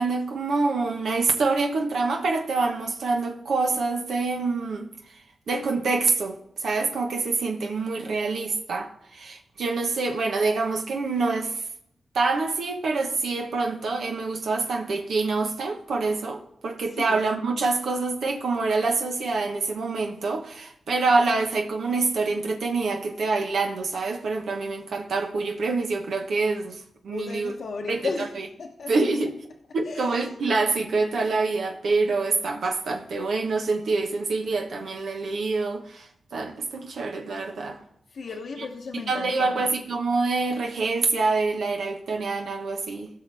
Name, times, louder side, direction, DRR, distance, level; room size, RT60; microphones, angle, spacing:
voice 1, 0.0-5.2 5.5-11.6 12.1-27.5 27.9-28.5 28.9-29.4 29.7-37.8 38.9-43.1, right 3 dB, 80° right, 1.2 m, -26 dB
voice 2, 27.1-28.9 29.8-30.3 38.1-39.6, left 4 dB, 75° left, 1.0 m, -35 dB
16.5 x 5.9 x 3.4 m
cardioid pair, 55°, 0 cm